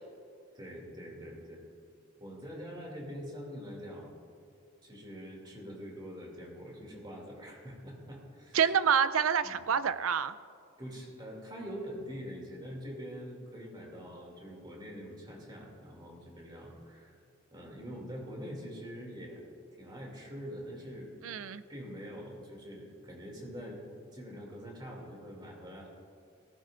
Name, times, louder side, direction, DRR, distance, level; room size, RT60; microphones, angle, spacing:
voice 1, 0.5-1.6 2.2-4.1 4.8-8.6 9.4-9.6 10.8-17.2 17.5-19.4 19.8-21.2 21.7-23.8 24.1-25.9, equal, 20° right, -1 dB, 2.6 m, -44 dB
voice 2, 8.5-10.3 21.2-21.6, right 7 dB, 80° right, 14 dB, 0.5 m, -27 dB
18.5 x 15.5 x 2.6 m, 2.5 s
head